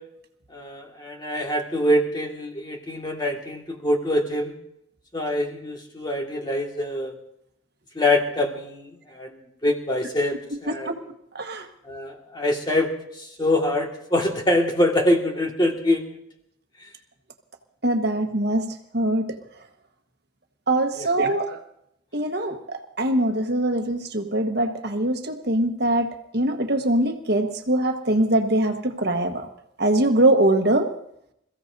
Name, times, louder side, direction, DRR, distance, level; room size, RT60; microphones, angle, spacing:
voice 1, 0.5-4.6 5.1-7.1 8.0-8.9 9.1-10.9 11.9-12.9 13.2-16.0, left 1 dB, 20° left, 1 dB, 1.9 m, -24 dB
voice 2, 11.3-11.7 17.8-19.4 20.7-21.6 22.1-29.5 29.8-30.9, right 1 dB, 50° right, 5 dB, 1.4 m, -23 dB
27.0 x 15.5 x 2.7 m, 0.76 s
head